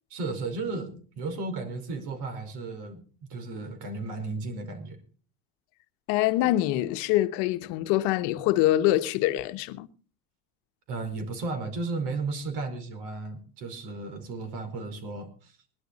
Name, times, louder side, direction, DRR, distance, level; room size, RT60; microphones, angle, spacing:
voice 1, 0.1-3.0 3.3-5.0 10.9-15.6, right 3 dB, 55° right, 5.0 m, -34 dB
voice 2, 6.1-9.9, left 15 dB, 60° left, 1.2 m, -24 dB
20.0 x 11.5 x 4.1 m
supercardioid pair, 125°, 47 cm